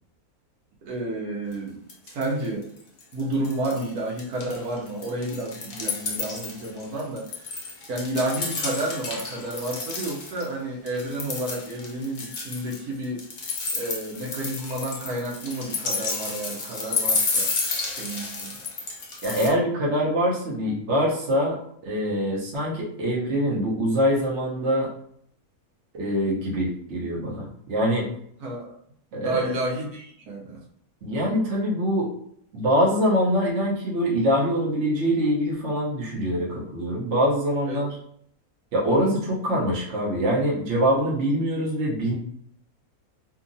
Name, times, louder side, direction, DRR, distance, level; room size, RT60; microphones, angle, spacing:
voice 1, 0.8-2.7 3.1-7.6 7.9-13.2 13.7-17.5 18.0-18.6 28.4-28.7 29.2-30.6 37.7-37.8 38.8-39.1, right 1 dB, 85° right, -2 dB, 1.2 m, -31 dB
sound 1, 1.5-1.6 1.9-2.5 2.8-3.9 4.2-10.5 10.9-19.5, left 4 dB, 85° left, 0.3 m, -31 dB
voice 2, 19.2-21.6 21.8-24.9 25.9-28.1 29.1-29.5 31.0-32.1 32.5-37.9 38.7-42.1, equal, 55° right, -4 dB, 1.1 m, -24 dB
2.8 x 2.4 x 2.6 m, 0.67 s
omnidirectional pair, 1.6 m